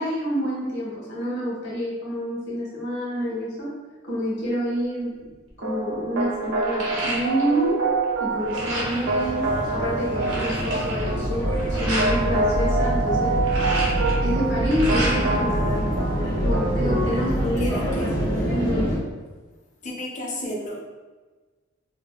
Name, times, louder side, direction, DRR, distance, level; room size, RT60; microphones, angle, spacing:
voice 1, 0.0-3.7 4.0-5.1 5.6-7.8 8.2-13.3 14.2-15.7 16.4-17.8 18.5-18.9, equal, 60° left, -6 dB, 1.1 m, -27 dB
sound 1, 5.2-5.5 5.9-7.7 8.0-9.1 9.6-9.7 9.9-12.2 13.2-15.4 15.8-16.7, right 1 dB, 85° right, 0.9 m, -31 dB
sound 2, 5.6-17.2, right 3 dB, 65° right, 0.4 m, -27 dB
sound 3, 8.4-19.0, equal, 85° left, 1.5 m, -26 dB
voice 2, 15.5-16.2 17.6-18.5 19.8-20.8, left 1 dB, 40° left, -2 dB, 0.5 m, -35 dB
3.5 x 2.1 x 2.3 m, 1.3 s
head